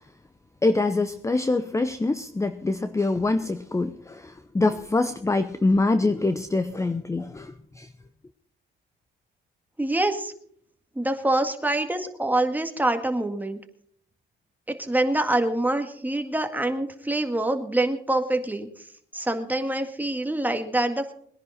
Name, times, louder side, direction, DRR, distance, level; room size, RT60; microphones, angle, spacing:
voice 1, 0.6-7.9, left 2 dB, 15° left, 11 dB, 0.7 m, -25 dB
voice 2, 9.8-10.3 11.0-13.6 14.7-18.7 19.1-21.1, right 1 dB, 10° right, 5 dB, 1.9 m, -25 dB
21.5 x 10.5 x 4.2 m, 0.64 s
cardioid pair, 90°, 20 cm